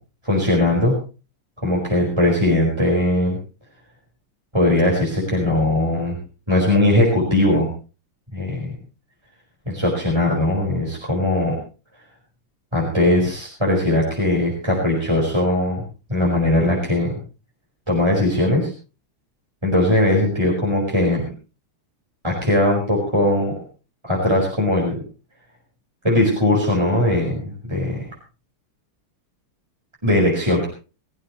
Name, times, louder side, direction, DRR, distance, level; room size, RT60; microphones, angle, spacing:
voice 1, 0.2-0.9 1.6-3.4 4.5-6.2 6.5-7.7 8.3-8.7 9.7-11.6 12.7-15.8 16.1-17.1 17.9-18.7 19.6-21.2 22.2-23.5 24.0-25.0 26.0-28.1 30.0-30.7, left 1 dB, 10° right, -2 dB, 4.9 m, -19 dB
22.0 x 15.0 x 3.1 m, 0.35 s
omnidirectional pair, 2.4 m